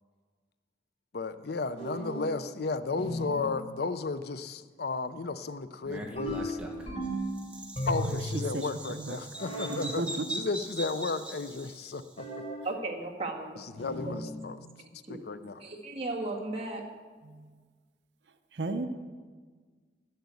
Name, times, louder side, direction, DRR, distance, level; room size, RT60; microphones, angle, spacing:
voice 1, 1.1-6.6 7.9-12.3 13.8-14.6 14.9-15.6, left 3 dB, 55° left, 13 dB, 0.5 m, -34 dB
sound 1, 1.8-2.3 3.0-3.5 6.2-7.4 7.8-8.4 9.4-9.9 12.2-12.7 13.8-14.3, equal, 35° left, 3.8 m, -35 dB
Bird vocalization bird call bird song, 5.8-12.1, right 1 dB, 5° right, 1.4 m, -41 dB
voice 2, 9.7-10.3 18.6-18.9, right 2 dB, 65° right, 8 dB, 0.7 m, -33 dB
voice 3, 12.6-13.6 15.1-15.2 15.6-16.9, right 2 dB, 30° right, -1 dB, 1.9 m, -35 dB
12.0 x 7.8 x 8.4 m, 1.5 s
head